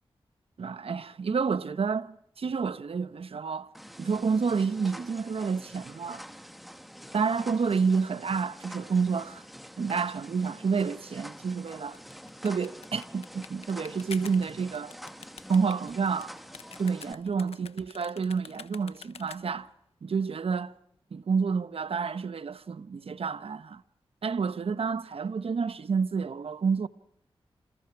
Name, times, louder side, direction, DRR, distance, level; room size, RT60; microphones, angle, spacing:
voice 1, 0.6-3.7 4.0-6.2 7.1-9.4 9.8-12.0 12.4-14.9 15.5-16.3 16.8-19.7 20.0-20.7 21.1-23.8 24.2-26.9, right 5 dB, 70° right, 1.2 m, -29 dB
sound 1, 3.7-17.1, equal, ahead, 2.1 m, -46 dB
sound 2, 11.8-19.7, left 6 dB, 85° left, 1.2 m, -48 dB
28.0 x 27.5 x 4.8 m
cardioid pair, 55°, 10 cm